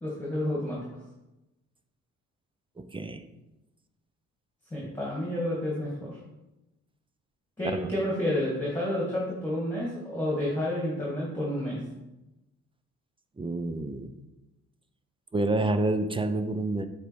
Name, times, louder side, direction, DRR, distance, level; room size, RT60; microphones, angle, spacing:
voice 1, 0.0-0.8 4.7-6.2 7.6-11.8, left 1 dB, 5° left, -6 dB, 2.0 m, -30 dB
voice 2, 2.8-3.2 7.8-7.9 13.4-14.1 15.3-16.9, right 2 dB, 15° right, 9 dB, 0.6 m, -28 dB
7.4 x 3.5 x 4.7 m, 0.98 s
cardioid pair, 90°, 30 cm